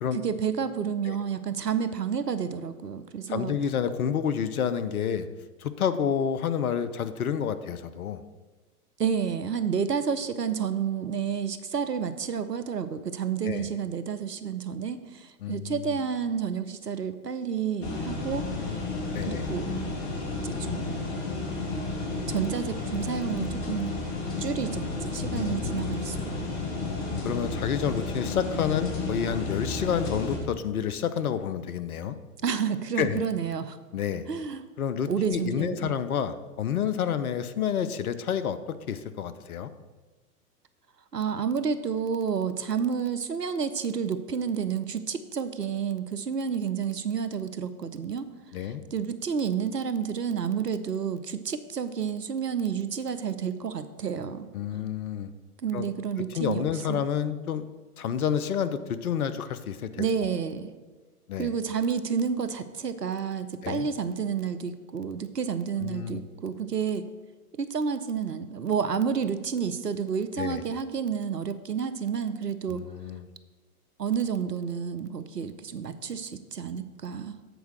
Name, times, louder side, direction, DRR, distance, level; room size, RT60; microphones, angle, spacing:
voice 1, 0.2-3.6 9.0-18.5 19.2-19.8 20.4-20.9 22.3-23.9 24.4-26.4 32.4-33.8 34.3-34.6 35.1-35.9 41.1-48.3 48.9-54.5 55.6-57.0 60.0-60.7 61.4-67.1 67.5-72.8 74.0-77.3, right 7 dB, 85° right, 11 dB, 0.7 m, -30 dB
voice 2, 3.3-5.3 5.6-8.2 13.4-13.7 15.4-16.0 18.6-19.5 25.3-25.9 27.2-32.2 33.0-33.2 33.9-34.3 34.8-39.7 48.5-48.8 54.5-55.3 55.7-55.9 56.3-57.7 58.0-60.3 61.3-61.5 63.6-63.9 65.8-66.2 70.4-70.6 72.7-73.3, left 8 dB, 65° left, 12 dB, 0.7 m, -29 dB
sound 1, 17.8-30.4, left 3 dB, 35° left, 1.5 m, -32 dB
7.9 x 4.6 x 6.4 m, 1.3 s
figure-of-eight pair, 105°, 47 cm